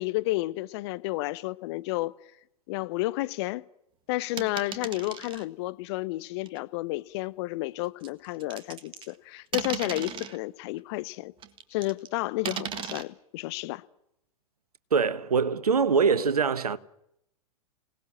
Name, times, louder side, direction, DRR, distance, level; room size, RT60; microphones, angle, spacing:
voice 1, 0.0-2.2 2.7-3.6 4.1-11.3 11.7-13.8, left 20 dB, 45° left, 1.0 m, -31 dB
sound 1, 4.4-5.4 6.5-6.6 8.0-9.2 9.5-10.4 11.4-12.1 12.5-13.0, right 9 dB, 25° right, 1.7 m, -36 dB
voice 2, 14.9-16.8, right 5 dB, 75° right, 1.3 m, -23 dB
27.0 x 18.5 x 7.5 m
figure-of-eight pair, 100°, 19 cm